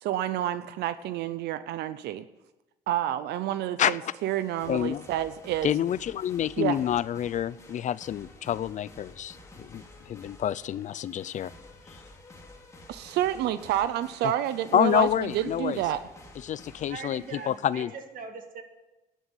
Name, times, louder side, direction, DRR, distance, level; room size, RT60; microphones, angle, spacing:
voice 1, 0.0-2.3 2.9-5.7 6.6-6.8 12.9-16.0, right 12 dB, 80° right, 14 dB, 0.7 m, -29 dB
voice 2, 3.8-4.1 4.7-5.0 5.6-11.5 14.7-15.8 16.4-17.9, left 10 dB, 45° left, 18 dB, 0.5 m, -28 dB
sound 1, 4.2-17.9, left 2 dB, 20° left, 2.5 m, -51 dB
voice 3, 16.9-18.6, right 5 dB, 55° right, 7 dB, 2.0 m, -41 dB
11.0 x 9.3 x 9.9 m, 1.0 s
cardioid pair, 110°, 17 cm